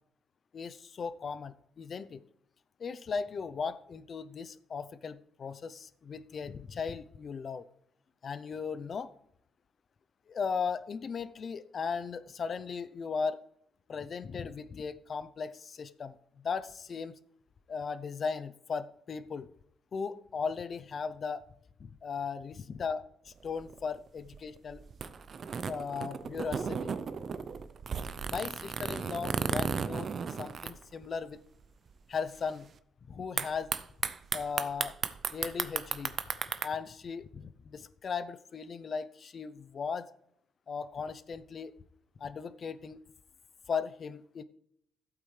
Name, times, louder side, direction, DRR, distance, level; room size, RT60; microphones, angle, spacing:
voice 1, 0.5-2.2 2.8-7.7 8.2-9.1 10.3-13.4 13.9-17.1 17.7-19.5 19.9-21.4 21.8-24.8 25.7-26.9 28.3-30.1 30.4-31.4 32.1-32.7 33.1-33.7 34.3-34.9 35.3-36.2 36.6-40.1 40.7-41.7 42.2-43.0 43.7-44.4, left 5 dB, 50° left, 14 dB, 0.7 m, -37 dB
sound 1, 23.3-31.4 31.6-31.7 31.9-32.4 33.4-36.7, right 6 dB, 50° right, 0.7 m, -35 dB
14.5 x 8.4 x 3.3 m, 0.71 s
cardioid pair, 90°, 0 cm